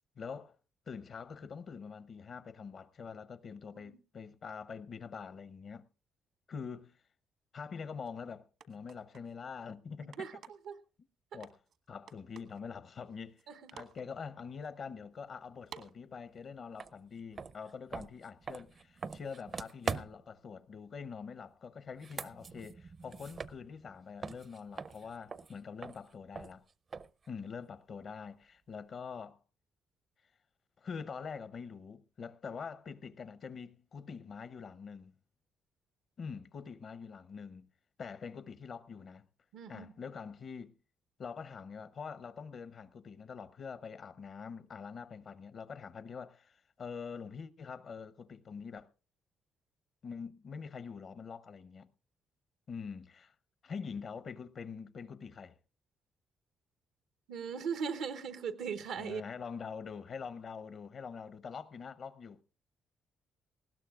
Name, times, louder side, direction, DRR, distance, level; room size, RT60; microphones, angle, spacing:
voice 1, 0.2-0.6 0.9-5.9 6.5-7.0 7.5-10.4 11.0-11.1 11.3-11.6 11.9-13.4 13.7-26.6 27.3-29.4 30.8-35.1 36.2-37.7 38.0-39.3 39.7-40.7 41.2-48.9 50.0-51.9 52.7-53.3 53.6-55.6 59.0-62.4, left 6 dB, 55° left, 0.7 m, -45 dB
sound 1, 8.1-8.2 8.6-9.3 10.1-10.7 11.4-11.8 12.1-12.6 13.1-13.4 13.7-14.0 14.6-14.7 15.7-15.9, right 7 dB, 70° right, 1.3 m, -51 dB
voice 2, 10.0-10.4 10.7-10.8 13.5-13.7 39.5-39.9 57.3-59.2, right 6 dB, 85° right, 0.9 m, -39 dB
sound 2, 16.8-16.9 17.3-20.4 21.9-24.0 24.2-27.3, right 5 dB, 40° right, 0.6 m, -42 dB
19.5 x 16.5 x 2.4 m
cardioid pair, 90°, 0 cm